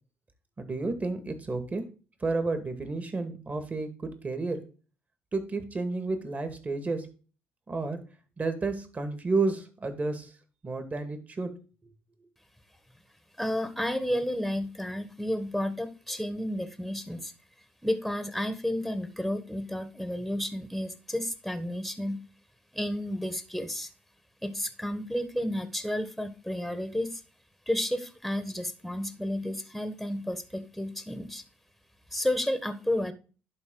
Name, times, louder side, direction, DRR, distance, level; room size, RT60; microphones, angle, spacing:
voice 1, 0.6-1.8 2.2-4.6 5.3-7.1 7.7-8.0 8.4-10.3 10.6-11.5, right 3 dB, 30° right, 9 dB, 1.9 m, -31 dB
voice 2, 13.4-17.3 17.8-22.2 22.7-23.9 24.4-27.2 27.7-31.4 32.1-33.1, left 1 dB, ahead, 11 dB, 1.2 m, -31 dB
11.0 x 3.9 x 3.8 m, 0.35 s
supercardioid pair, 65°, 5 cm